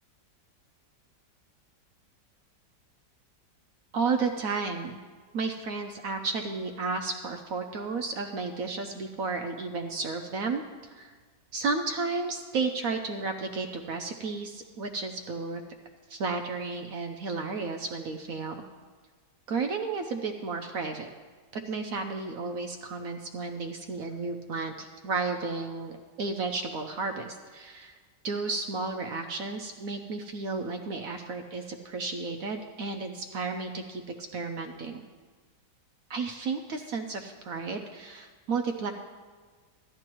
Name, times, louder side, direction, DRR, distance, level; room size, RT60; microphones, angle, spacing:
voice 1, 3.9-5.0 5.3-10.6 10.9-11.1 11.5-15.6 16.1-18.6 19.5-21.1 21.5-25.9 26.2-28.0 28.2-35.0 36.1-38.9, right 4 dB, 65° right, 4 dB, 0.9 m, -33 dB
14.5 x 11.0 x 3.0 m, 1.5 s
omnidirectional pair, 1.9 m